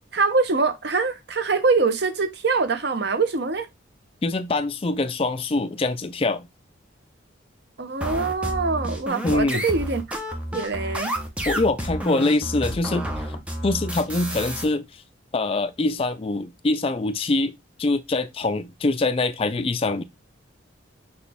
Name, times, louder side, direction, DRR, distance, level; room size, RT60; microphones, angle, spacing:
voice 1, 0.1-3.7 7.8-10.0 10.5-11.1, right 4 dB, 55° right, 0.7 m, -23 dB
voice 2, 4.2-6.5 9.2-9.6 11.5-13.3 13.6-15.0 15.3-20.0, left 2 dB, 30° left, 0.4 m, -24 dB
sound 1, 8.0-14.6, equal, 5° right, 0.7 m, -30 dB
6.0 x 2.3 x 3.4 m
head